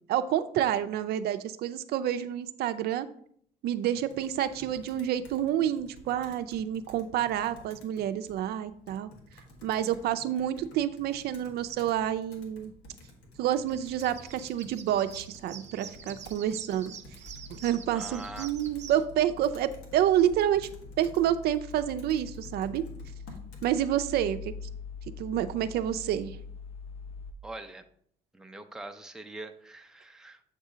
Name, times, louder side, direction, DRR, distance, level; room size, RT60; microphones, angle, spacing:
voice 1, 0.1-3.1 3.6-9.1 9.6-12.7 13.4-16.9 17.5-20.7 21.0-22.8 23.6-24.5 25.2-26.4, right 11 dB, 70° right, 11 dB, 0.4 m, -28 dB
Computer keyboard, 4.1-23.7, left 1 dB, 90° left, 1.4 m, -53 dB
sound 1, 13.6-19.0, right 7 dB, 45° right, 0.8 m, -46 dB
sound 2, 17.3-27.3, left 5 dB, 35° left, 0.7 m, -44 dB
voice 2, 17.9-18.5 27.4-27.8 28.3-30.4, right 2 dB, 5° right, 6 dB, 0.5 m, -43 dB
7.9 x 2.7 x 4.9 m, 0.63 s
cardioid pair, 110°, 17 cm